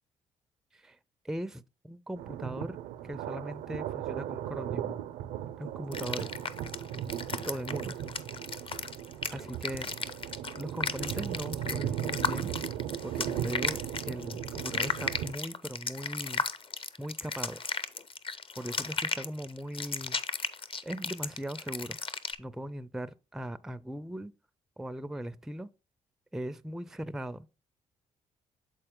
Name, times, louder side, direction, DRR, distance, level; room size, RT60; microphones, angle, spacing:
voice 1, 1.2-2.8 3.0-5.0 5.6-6.3 7.5-7.9 9.3-9.9 10.6-12.5 13.0-13.8 14.1-16.4 17.0-17.6 18.6-20.2 20.8-22.0 22.4-24.3 24.8-25.7 26.3-27.5, right 1 dB, 5° right, 0.4 m, -39 dB
Thunder, 2.2-15.3, right 11 dB, 85° right, 0.5 m, -37 dB
sound 1, 5.9-22.4, left 4 dB, 35° left, 0.6 m, -35 dB
7.7 x 4.2 x 3.6 m
supercardioid pair, 50°, 15 cm